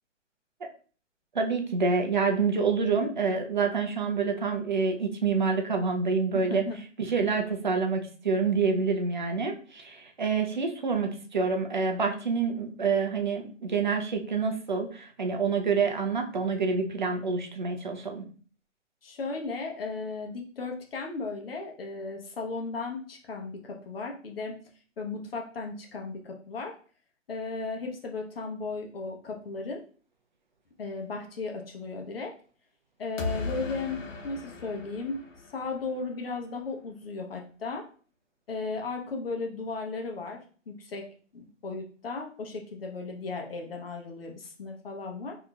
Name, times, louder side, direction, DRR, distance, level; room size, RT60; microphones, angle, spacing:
voice 1, 1.3-6.6 7.1-18.2, right 5 dB, 40° right, 4 dB, 0.4 m, -27 dB
voice 2, 6.3-6.8 19.0-24.6 25.0-26.8 27.3-29.8 30.8-32.3 33.0-35.2 35.5-37.8 38.5-45.4, left 3 dB, 50° left, 2 dB, 0.9 m, -36 dB
sound 1, 33.2-36.1, left 4 dB, 80° left, 0.7 m, -37 dB
4.2 x 2.8 x 2.3 m, 0.41 s
hypercardioid pair, 150°, 38 cm